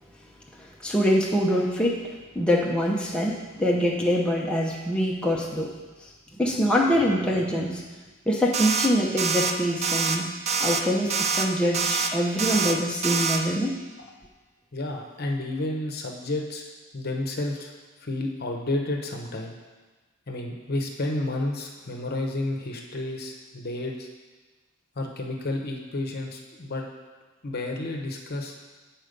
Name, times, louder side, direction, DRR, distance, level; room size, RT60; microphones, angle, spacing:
voice 1, 0.8-5.7 6.4-7.8 8.3-10.3 10.6-13.7, equal, 5° left, -3 dB, 0.7 m, -24 dB
sound 1, 8.5-8.9 9.2-9.5 9.8-10.2 10.5-10.8 11.1-11.5 11.7-12.1 12.4-12.8 13.0-13.4, right 5 dB, 30° right, 0.4 m, -25 dB
voice 2, 14.7-16.7 16.9-17.7 18.0-19.6 20.3-24.1 25.0-26.8 27.4-28.5, left 2 dB, 50° left, 2 dB, 0.9 m, -31 dB
8.0 x 4.5 x 5.1 m, 1.3 s
head